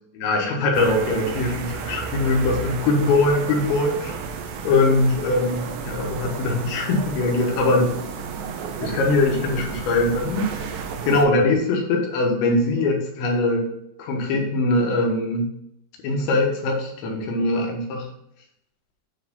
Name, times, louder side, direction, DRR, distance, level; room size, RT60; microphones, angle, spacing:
voice 1, 0.2-4.2 4.6-7.9 8.8-10.6 11.1-13.6 14.0-15.5 16.0-18.1, left 2 dB, 85° left, 1 dB, 3.6 m, -21 dB
sound 1, 0.7-11.3, right 5 dB, 85° right, 2.1 m, -32 dB
9.7 x 3.6 x 5.5 m, 0.77 s
omnidirectional pair, 5.0 m